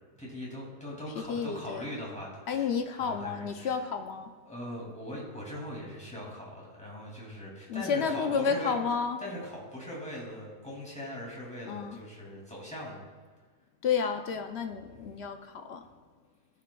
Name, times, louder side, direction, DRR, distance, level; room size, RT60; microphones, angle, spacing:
voice 1, 0.2-3.9 4.4-8.8 9.2-13.0, equal, 5° left, -5 dB, 2.3 m, -41 dB
voice 2, 1.3-1.9 2.5-4.3 7.7-9.2 11.7-12.0 13.8-15.8, left 6 dB, 65° left, 6 dB, 0.6 m, -31 dB
15.0 x 5.9 x 2.3 m, 1.4 s
omnidirectional pair, 1.7 m